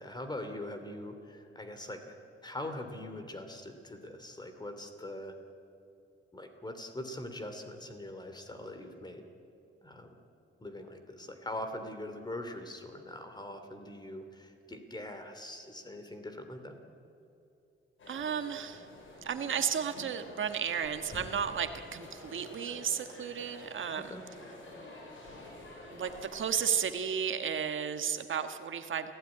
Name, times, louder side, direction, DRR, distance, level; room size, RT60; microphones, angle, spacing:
voice 1, 0.0-2.0 2.4-5.4 6.3-9.3 9.8-10.1 10.6-16.8 23.9-24.2, left 1 dB, 20° left, 7 dB, 2.7 m, -42 dB
sound 1, 18.0-26.8, left 1 dB, 70° left, 6.5 m, -49 dB
voice 2, 18.1-18.8 19.2-24.2 25.9-29.1, right 7 dB, 65° right, 8 dB, 1.4 m, -33 dB
28.0 x 16.0 x 9.8 m, 2.7 s
wide cardioid pair, 125°, 21 cm